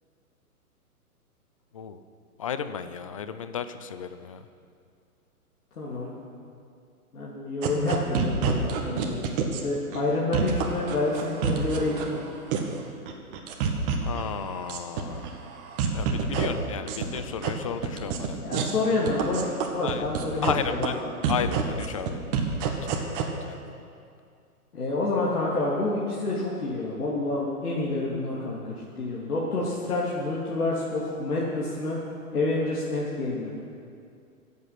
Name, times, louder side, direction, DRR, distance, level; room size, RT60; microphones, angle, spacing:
voice 1, 2.4-4.5 14.1-15.4 15.9-18.4 19.8-20.0 20.4-21.0 21.3-22.2 22.8-23.7, left 7 dB, 25° left, 11 dB, 0.4 m, -33 dB
voice 2, 5.8-6.1 7.1-12.2 18.4-20.9 24.7-32.0 32.3-33.5, left 2 dB, 75° left, -6 dB, 3.1 m, -28 dB
sound 1, 7.6-9.6 9.9-10.0 10.3-12.1 12.5-12.8 13.1-14.2 14.5-15.3 15.6-16.5 16.9-17.5 17.8-18.3 18.5-18.7 19.1-20.5 20.8-20.9 21.2-23.2, right 8 dB, 35° right, 1.9 m, -27 dB
24.0 x 8.4 x 5.9 m, 2.4 s
hypercardioid pair, 125°, 45 cm